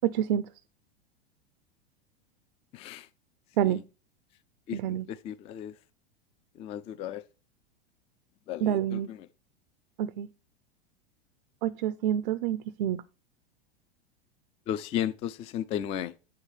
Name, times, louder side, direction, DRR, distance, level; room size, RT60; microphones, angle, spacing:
voice 1, 0.0-0.5 3.6-3.8 4.7-5.1 8.6-9.1 10.0-10.3 11.6-13.0, right 11 dB, 60° right, 0.5 m, -28 dB
voice 2, 2.7-3.1 3.6-3.8 4.7-5.7 6.6-7.2 8.5-9.2 14.7-16.1, left 10 dB, 20° left, 0.3 m, -34 dB
8.1 x 3.4 x 5.4 m
hypercardioid pair, 95°, 30 cm